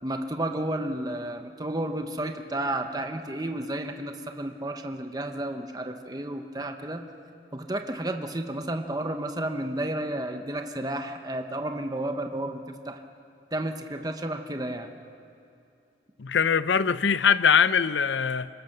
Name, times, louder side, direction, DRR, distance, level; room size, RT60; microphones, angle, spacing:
voice 1, 0.0-7.1 7.5-13.0 13.5-14.9, right 1 dB, 20° right, 5 dB, 1.0 m, -32 dB
voice 2, 16.2-18.5, left 6 dB, 80° left, 15 dB, 0.6 m, -22 dB
25.0 x 22.0 x 6.7 m, 2.7 s
head